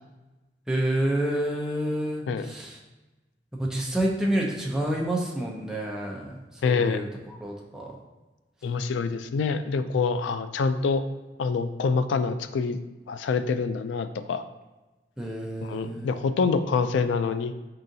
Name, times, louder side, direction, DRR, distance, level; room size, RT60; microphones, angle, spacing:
voice 1, 0.7-2.8 3.5-7.9 15.2-16.1, right 1 dB, 5° right, -2 dB, 0.6 m, -29 dB
voice 2, 6.6-7.0 8.6-11.0 11.4-12.8 13.1-14.4 15.6-17.5, left 4 dB, 85° left, 11 dB, 0.3 m, -26 dB
4.7 x 3.8 x 2.7 m, 1.1 s
head